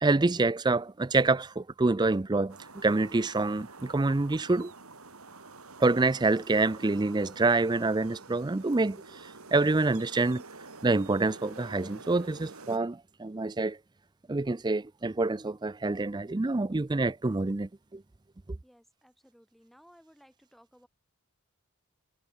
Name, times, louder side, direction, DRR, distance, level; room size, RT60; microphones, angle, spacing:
voice 1, 0.0-4.7 5.8-9.2 9.5-10.4 10.8-13.8 14.3-18.0, right 3 dB, 20° right, 0.4 m, -27 dB
sound 1, 2.5-12.8, right 3 dB, 80° right, 3.4 m, -48 dB
voice 2, 18.6-20.9, equal, ahead, 6.0 m, -59 dB
head